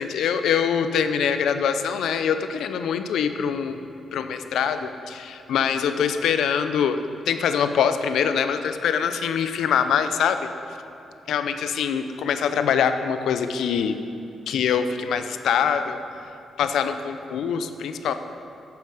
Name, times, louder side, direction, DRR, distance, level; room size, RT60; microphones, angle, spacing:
voice 1, 0.0-10.5 11.3-14.0 14.5-16.0 16.6-18.1, left 7 dB, 75° left, 9 dB, 0.6 m, -24 dB
8.7 x 7.5 x 8.9 m, 2.9 s
supercardioid pair, 50°, 0 cm